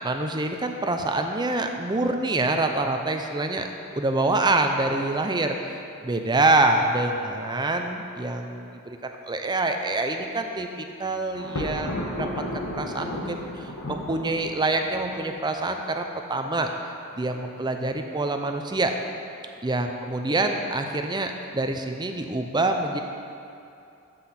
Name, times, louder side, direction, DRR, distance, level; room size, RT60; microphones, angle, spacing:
voice 1, 0.0-3.7 4.0-12.3 12.5-16.7 17.1-19.0 19.6-23.0, right 2 dB, 20° right, 5 dB, 0.6 m, -26 dB
Thunder, 11.3-15.5, left 1 dB, 70° left, 1.3 m, -33 dB
11.5 x 8.0 x 4.3 m, 2.6 s
head